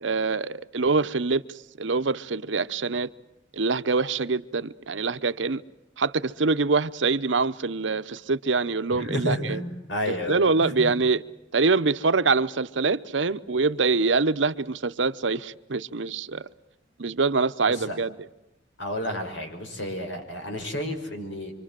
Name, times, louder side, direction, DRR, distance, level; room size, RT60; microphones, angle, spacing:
voice 1, 0.0-1.4 1.8-3.1 3.5-5.6 6.0-9.6 10.3-11.2 11.5-16.5 17.0-18.1, right 4 dB, 80° right, 0.9 m, -24 dB
voice 2, 8.9-10.4 10.6-10.9 17.7-18.0 18.8-21.5, equal, 80° left, 5.8 m, -31 dB
26.5 x 25.5 x 7.6 m
head